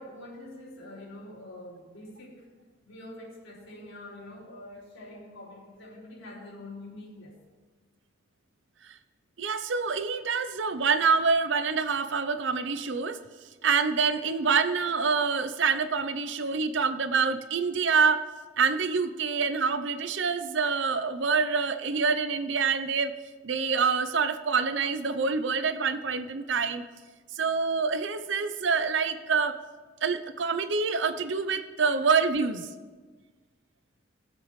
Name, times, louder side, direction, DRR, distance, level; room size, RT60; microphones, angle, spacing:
voice 1, 0.0-2.5 2.8-7.4, left 1 dB, 80° left, -6 dB, 4.2 m, -45 dB
voice 2, 9.4-13.2 13.6-18.3 18.6-23.1 23.4-26.8 27.3-29.6 30.0-32.7, right 5 dB, 65° right, 11 dB, 0.7 m, -26 dB
20.5 x 7.7 x 3.2 m, 1.4 s
head